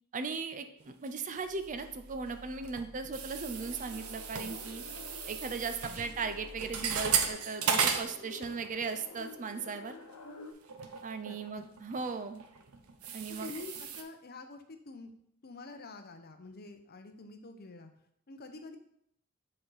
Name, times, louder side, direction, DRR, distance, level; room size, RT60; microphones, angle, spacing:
voice 1, 0.1-4.8 5.3-9.9 11.0-12.4 13.1-13.5, right 4 dB, 35° right, 9 dB, 0.5 m, -37 dB
sound 1, 1.1-2.0 2.3-8.9 9.2-9.5 10.0-10.1 10.6-14.0, right 6 dB, 85° right, 0.8 m, -35 dB
sound 2, 1.4-7.3, equal, 5° left, 1.3 m, -52 dB
sound 3, 3.3-10.5, left 3 dB, 85° left, 0.9 m, -50 dB
voice 2, 11.2-11.6 13.4-15.1 15.4-17.9 18.3-18.8, left 3 dB, 45° left, 7 dB, 0.7 m, -47 dB
7.6 x 4.4 x 4.0 m, 0.70 s
head